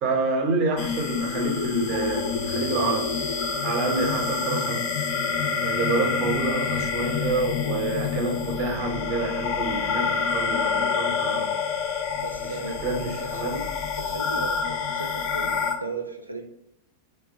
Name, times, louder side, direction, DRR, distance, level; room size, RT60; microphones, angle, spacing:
voice 1, 0.0-3.1 3.6-4.8 5.6-11.5 12.6-13.6, right 3 dB, 35° right, 2 dB, 0.8 m, -28 dB
sound 1, 0.8-15.7, left 5 dB, 40° left, 0.4 m, -27 dB
voice 2, 12.2-12.8 13.2-13.7 14.0-16.4, right 2 dB, 85° right, 4 dB, 0.3 m, -36 dB
2.8 x 2.2 x 3.5 m, 0.79 s
figure-of-eight pair, 90°, 0 cm